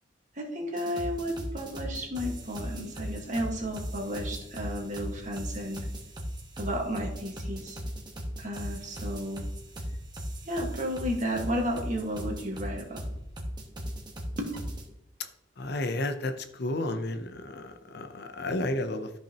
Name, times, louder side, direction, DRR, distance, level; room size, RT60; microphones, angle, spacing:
voice 1, 0.3-5.8 6.6-7.8 8.4-9.4 10.4-13.0 14.4-14.5, equal, 40° right, 1 dB, 1.7 m, -33 dB
sound 1, 0.8-14.8, equal, 25° right, 1.3 m, -37 dB
voice 2, 15.6-19.1, left 1 dB, 55° left, 7 dB, 0.7 m, -32 dB
13.5 x 5.7 x 3.0 m, 0.84 s
head